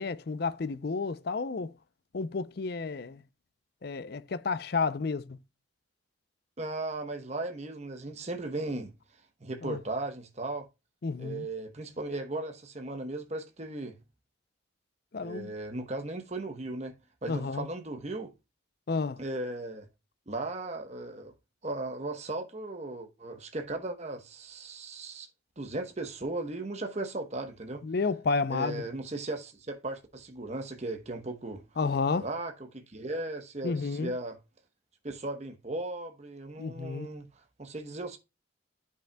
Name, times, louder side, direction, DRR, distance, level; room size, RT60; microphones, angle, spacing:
voice 1, 0.0-1.7 2.1-3.2 3.8-5.4 9.6-9.8 11.0-11.5 15.1-15.5 17.3-17.7 18.9-19.2 27.8-28.9 31.8-32.3 33.6-34.1 36.6-37.1, left 4 dB, 50° left, 0.5 m, -31 dB
voice 2, 6.6-8.9 9.4-10.7 11.2-14.0 15.2-18.3 19.2-19.9 20.3-21.3 21.6-25.3 25.6-27.8 28.5-31.6 32.2-34.4 35.0-37.3 37.6-38.2, right 2 dB, 35° right, 0.9 m, -37 dB
10.5 x 5.6 x 2.2 m
head